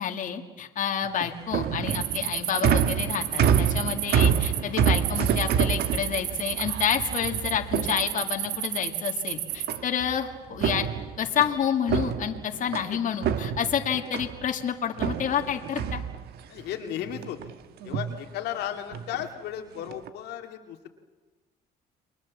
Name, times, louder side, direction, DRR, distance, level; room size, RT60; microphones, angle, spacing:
voice 1, 0.0-10.9 11.2-16.0, left 8 dB, 50° left, 4 dB, 2.1 m, -29 dB
sound 1, 1.0-8.6 9.7-10.2 10.5-12.9 13.2-14.5 15.0-16.6 17.0-17.5 17.8-18.2 18.9-19.3 19.8-20.1, right 8 dB, 70° right, 1.5 m, -27 dB
sound 2, 1.9-9.8, right 13 dB, 90° right, 1.4 m, -32 dB
voice 2, 16.5-17.4 17.8-20.9, left 10 dB, 80° left, 4 dB, 2.2 m, -35 dB
30.0 x 22.5 x 7.4 m, 1.2 s
cardioid pair, 110°, 17 cm